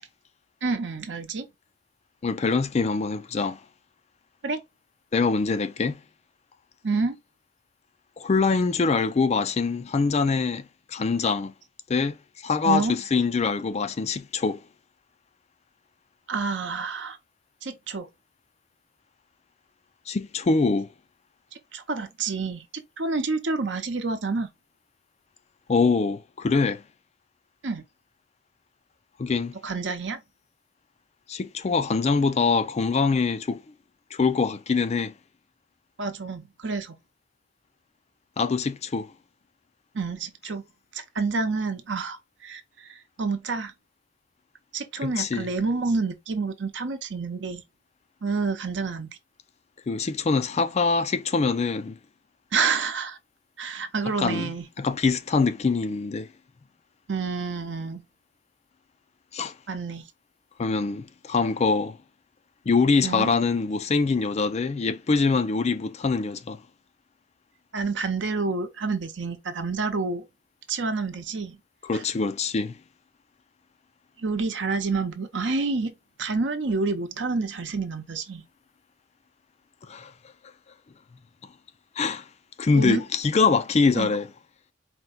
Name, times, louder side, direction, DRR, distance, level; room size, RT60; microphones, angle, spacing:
voice 1, 0.6-1.5 4.4-4.6 6.8-7.2 12.6-12.9 16.3-17.2 17.6-18.1 21.7-24.5 27.6-27.8 29.6-30.2 36.0-37.0 39.9-40.6 40.9-43.7 44.7-47.6 48.2-49.1 52.5-53.2 53.6-54.6 57.1-58.0 59.7-60.0 63.0-63.3 67.7-70.2 70.7-71.6 71.9-72.0 74.2-75.9 76.2-78.4 82.7-83.0 83.9-84.1, right 4 dB, 70° right, 0.8 m, -28 dB
voice 2, 2.2-3.6 5.1-6.0 8.2-10.6 10.9-11.5 11.9-14.6 20.1-20.9 25.7-26.8 29.2-29.5 31.3-33.6 34.1-35.1 38.4-39.1 45.0-45.5 49.9-52.0 54.2-54.5 54.8-56.3 59.3-59.5 60.6-62.0 62.7-66.6 71.8-72.8 79.8-80.1 82.0-82.2 82.6-84.3, left 4 dB, 35° left, 0.4 m, -24 dB
4.5 x 2.2 x 3.8 m
head